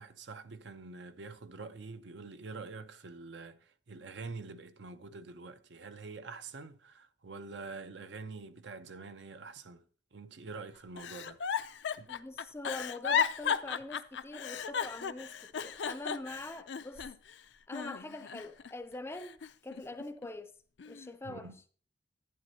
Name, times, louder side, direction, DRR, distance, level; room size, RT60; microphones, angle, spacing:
voice 1, 0.0-9.8 10.1-11.4 12.0-12.1 21.2-21.6, right 4 dB, 70° right, 0.6 m, -46 dB
Giggle, 11.0-17.3 17.7-18.7 19.1-20.3 20.8-21.1, left 7 dB, 70° left, 0.5 m, -35 dB
voice 2, 12.1-17.1 17.7-20.5 20.8-21.5, left 2 dB, 15° left, 0.5 m, -44 dB
11.0 x 9.0 x 2.8 m
head